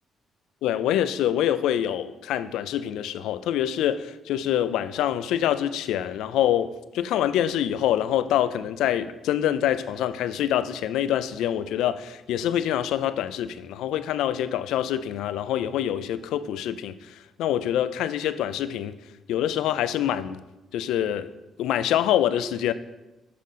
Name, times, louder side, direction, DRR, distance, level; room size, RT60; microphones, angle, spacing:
voice 1, 0.6-19.0 19.3-20.4 20.7-21.3 21.6-22.7, left 11 dB, 85° left, 13 dB, 0.3 m, -25 dB
7.5 x 3.7 x 5.6 m, 0.99 s
cardioid pair, 90°, 0 cm